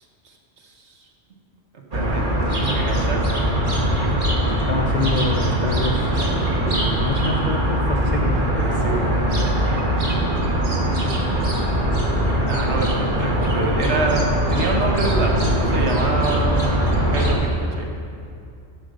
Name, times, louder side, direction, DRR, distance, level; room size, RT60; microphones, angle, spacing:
sound 1, 1.9-17.3, right 1 dB, 45° right, 1.5 m, -21 dB
voice 1, 1.9-2.3 2.5-3.2 8.6-9.1 12.4-17.9, right 2 dB, 70° right, 1 dB, 1.5 m, -26 dB
voice 2, 4.7-6.1 6.6-8.4 14.0-14.1, left 4 dB, 45° left, 1 dB, 0.6 m, -26 dB
12.0 x 5.2 x 6.5 m, 2.4 s
omnidirectional pair, 1.2 m